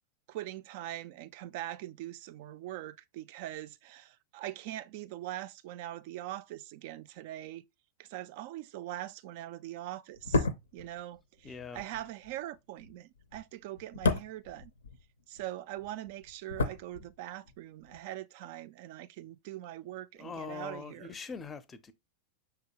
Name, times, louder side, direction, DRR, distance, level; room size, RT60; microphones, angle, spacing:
voice 1, 0.3-7.6 8.0-10.5 10.7-14.7 15.3-21.2, right 14 dB, 50° right, 0.3 m, -42 dB
sound 1, 10.1-15.5 15.7-17.6 17.8-18.0, left 3 dB, 70° left, 0.6 m, -34 dB
voice 2, 11.4-11.8 20.2-21.9, left 5 dB, 20° left, 0.5 m, -42 dB
5.9 x 2.8 x 2.9 m
figure-of-eight pair, 90°, 0 cm